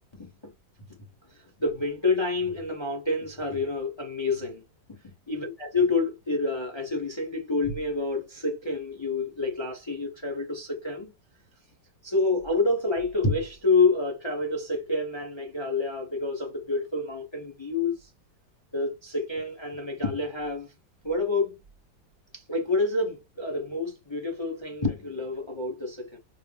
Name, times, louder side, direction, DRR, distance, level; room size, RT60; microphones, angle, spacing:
voice 1, 0.1-0.5 0.9-11.1 12.0-18.1 18.7-20.7 21.0-21.6 22.3-26.2, left 3 dB, 20° left, 0.8 m, -28 dB
4.7 x 2.1 x 3.4 m
omnidirectional pair, 2.1 m